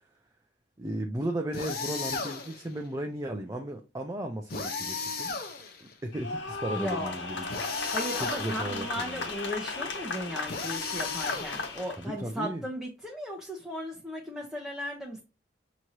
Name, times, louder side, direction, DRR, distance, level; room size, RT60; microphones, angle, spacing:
voice 1, 0.8-5.4 5.8-7.7 8.2-9.3 12.0-12.6, right 1 dB, 20° right, 0.5 m, -35 dB
sound 1, 1.5-2.7 4.5-5.9 7.5-8.8 10.5-11.9, left 4 dB, 55° left, 0.9 m, -35 dB
sound 2, 6.1-12.0, left 3 dB, 80° left, 1.2 m, -35 dB
voice 2, 6.7-7.1 7.9-15.2, equal, ahead, 0.8 m, -36 dB
6.2 x 3.0 x 2.8 m
head